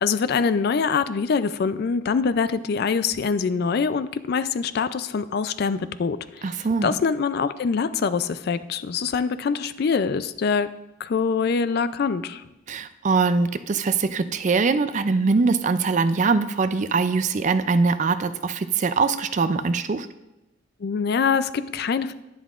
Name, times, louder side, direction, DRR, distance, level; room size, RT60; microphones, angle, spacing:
voice 1, 0.0-10.7 11.0-12.4 20.8-22.1, left 5 dB, 50° left, 14 dB, 0.3 m, -24 dB
voice 2, 6.4-6.9 12.7-20.1, right 4 dB, 40° right, 12 dB, 0.4 m, -22 dB
11.0 x 10.0 x 2.4 m, 0.97 s
head